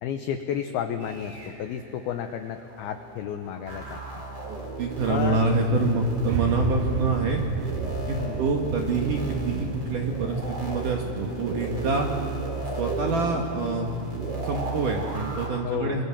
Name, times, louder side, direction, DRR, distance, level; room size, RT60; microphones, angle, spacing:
voice 1, 0.0-4.2 5.1-5.4 8.2-8.5 15.6-16.0, left 9 dB, 85° left, 7 dB, 2.2 m, -32 dB
sound 1, 1.0-15.5, right 3 dB, 25° right, 4.2 m, -34 dB
voice 2, 4.5-7.4 8.1-12.1 12.8-13.9 14.4-16.0, right 3 dB, 60° right, 1 dB, 2.2 m, -26 dB
sound 2, 6.3-12.5, right 9 dB, 80° right, 2.5 m, -33 dB
27.0 x 23.5 x 7.4 m, 2.6 s
omnidirectional pair, 5.6 m